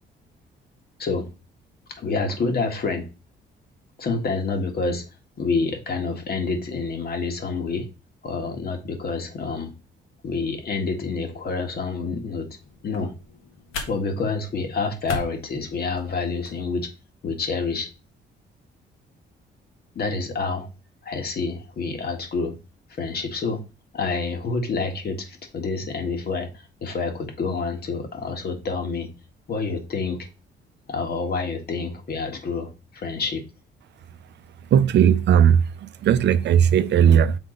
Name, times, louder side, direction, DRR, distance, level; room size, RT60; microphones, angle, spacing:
voice 1, 2.0-3.1 4.0-5.0 5.4-7.9 8.2-9.7 10.2-12.5 12.8-13.1 13.9-16.9 17.2-17.9 19.9-20.7 21.0-22.5 22.9-23.6 23.9-29.1 29.5-30.3 30.9-33.4, left 4 dB, 55° left, 1.6 m, -28 dB
sound 1, 12.6-16.6, left 3 dB, 90° left, 1.4 m, -38 dB
voice 2, 34.7-37.4, right 9 dB, 65° right, 0.5 m, -17 dB
6.9 x 3.7 x 3.8 m
cardioid pair, 90°, 20 cm